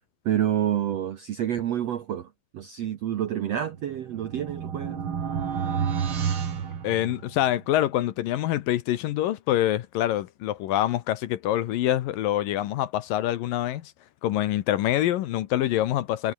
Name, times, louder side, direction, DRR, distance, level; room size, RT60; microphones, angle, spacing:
voice 1, 0.2-2.3 2.5-5.0, right 10 dB, 70° right, 1.6 m, -28 dB
sound 1, 3.7-7.6, right 7 dB, 40° right, 2.2 m, -30 dB
voice 2, 6.8-13.9 14.2-16.3, left 13 dB, 75° left, 2.5 m, -25 dB
omnidirectional pair, 4.4 m